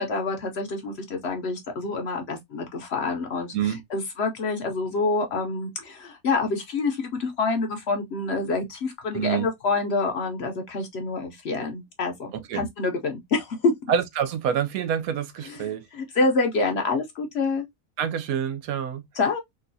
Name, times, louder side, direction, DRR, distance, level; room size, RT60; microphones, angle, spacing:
voice 1, 0.0-13.7 15.5-17.7 19.1-19.4, left 3 dB, 60° left, 0.8 m, -27 dB
voice 2, 9.1-9.5 12.3-12.6 13.9-15.9 18.0-19.0, right 8 dB, 80° right, 1.0 m, -27 dB
3.8 x 2.3 x 2.6 m
omnidirectional pair, 1.5 m